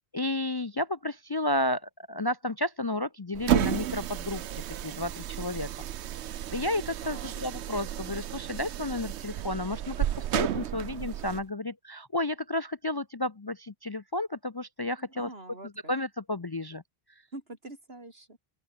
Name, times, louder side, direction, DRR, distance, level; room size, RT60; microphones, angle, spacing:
voice 1, 0.1-5.7 6.5-15.3 15.9-16.8, left 1 dB, 25° left, 0.6 m, -32 dB
sound 1, 3.3-11.4, right 11 dB, 85° right, 1.0 m, -32 dB
voice 2, 7.0-7.4 15.1-15.9 17.3-18.4, right 2 dB, 65° right, 5.4 m, -45 dB
open air
omnidirectional pair, 1.1 m